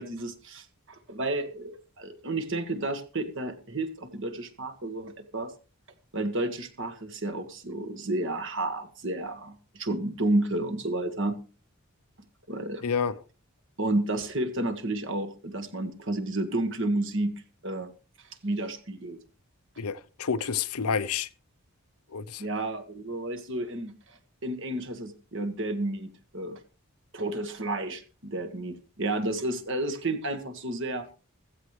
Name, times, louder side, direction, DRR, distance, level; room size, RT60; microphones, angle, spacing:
voice 1, 0.0-5.5 6.1-11.4 12.5-12.8 13.8-17.3 17.6-17.9 18.4-19.2 22.4-26.6 27.1-31.1, right 2 dB, 55° right, 1.7 m, -31 dB
voice 2, 12.8-13.2 19.8-21.3 22.1-22.4, left 6 dB, 80° left, 0.7 m, -29 dB
15.5 x 14.5 x 3.2 m
head